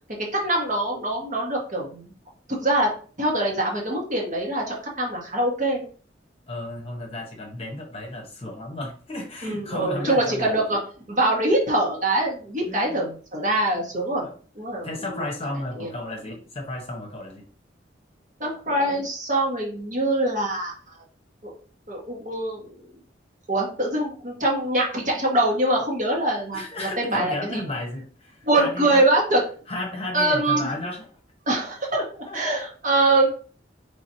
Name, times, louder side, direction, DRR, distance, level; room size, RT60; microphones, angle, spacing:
voice 1, 0.3-2.1 2.5-2.9 3.2-5.8 9.4-10.8 11.1-14.2 14.5-15.2 15.8-15.9 18.4-20.7 21.4-21.5 21.9-22.9 23.5-27.6 28.5-29.4 30.1-30.7 31.5-32.0 32.3-33.3, right 1 dB, 45° right, -2 dB, 1.5 m, -24 dB
voice 2, 6.5-10.6 12.7-13.2 14.2-14.4 14.8-17.4 26.5-29.1 29.7-31.1 32.3-32.4, left 2 dB, 35° left, 1 dB, 1.0 m, -33 dB
4.9 x 3.4 x 2.8 m, 0.41 s
head